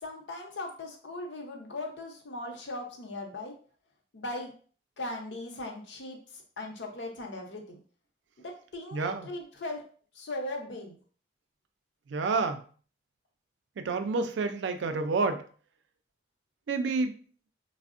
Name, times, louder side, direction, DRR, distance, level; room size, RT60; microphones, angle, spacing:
voice 1, 0.0-3.5 4.1-4.5 5.0-7.8 8.4-9.8 10.1-11.0, left 2 dB, 75° left, 2 dB, 0.6 m, -39 dB
voice 2, 8.9-9.3 12.1-12.6 13.8-15.4 16.7-17.1, right 4 dB, 85° right, 8 dB, 0.4 m, -29 dB
3.4 x 2.0 x 2.4 m, 0.42 s
head